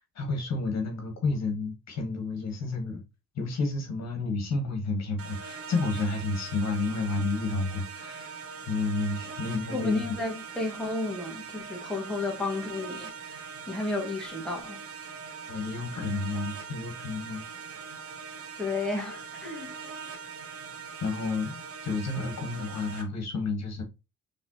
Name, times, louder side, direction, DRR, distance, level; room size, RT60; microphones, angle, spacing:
voice 1, 0.0-3.0 3.3-8.3 8.7-10.2 15.5-17.5 21.0-23.8, left 3 dB, 60° left, 1.5 m, -31 dB
sound 1, 5.2-23.0, right 6 dB, 50° right, 1.0 m, -42 dB
voice 2, 9.7-14.8 18.6-19.7, left 2 dB, ahead, 1.7 m, -33 dB
4.2 x 3.5 x 2.8 m
cardioid pair, 90°, 30 cm